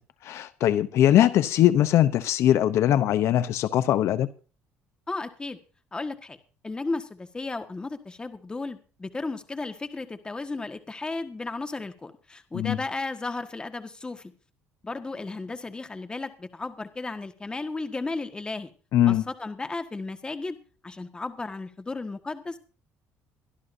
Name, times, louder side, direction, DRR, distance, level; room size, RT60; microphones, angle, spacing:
voice 1, 0.2-4.3 12.5-12.8 18.9-19.2, left 12 dB, 65° left, 0.7 m, -21 dB
voice 2, 5.1-5.6 5.9-6.4 6.6-14.3 14.8-18.7 19.1-20.6 20.8-22.6, left 3 dB, 15° left, 1.5 m, -34 dB
23.0 x 12.5 x 2.7 m
cardioid pair, 105°, 5 cm